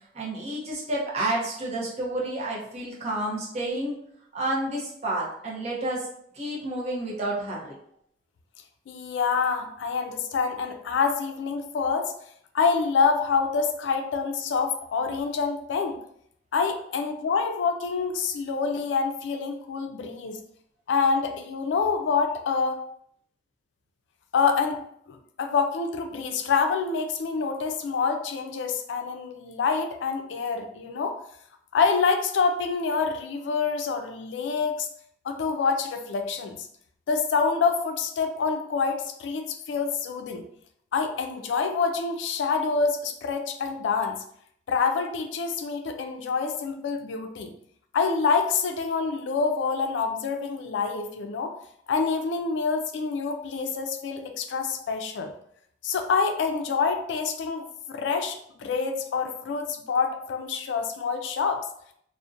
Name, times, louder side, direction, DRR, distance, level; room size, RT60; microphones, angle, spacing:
voice 1, 0.1-4.0 4.3-6.1 6.3-7.8, right 1 dB, 35° right, -4 dB, 0.6 m, -30 dB
voice 2, 8.9-12.1 12.5-16.0 16.5-20.4 20.9-22.8 24.3-24.8 25.1-31.2 31.7-34.9 35.2-36.6 37.1-40.4 40.9-44.2 44.7-47.5 47.9-51.5 51.9-55.3 55.8-61.6, left 5 dB, 85° left, 6 dB, 0.3 m, -26 dB
2.4 x 2.0 x 2.5 m, 0.68 s
head